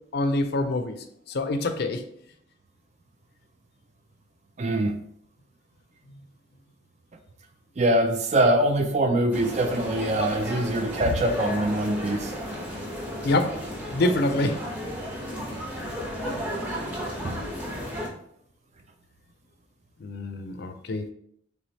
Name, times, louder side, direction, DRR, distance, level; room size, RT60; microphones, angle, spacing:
voice 1, 0.1-1.0 1.3-2.0 13.2-13.6 13.9-14.6 20.0-21.1, left 2 dB, 55° left, 7 dB, 0.4 m, -26 dB
voice 2, 4.6-4.9 7.8-12.3 17.2-17.4, right 1 dB, 35° right, 6 dB, 0.4 m, -23 dB
sound 1, 9.3-18.1, equal, 5° right, 0.8 m, -33 dB
3.3 x 3.2 x 4.0 m, 0.69 s
head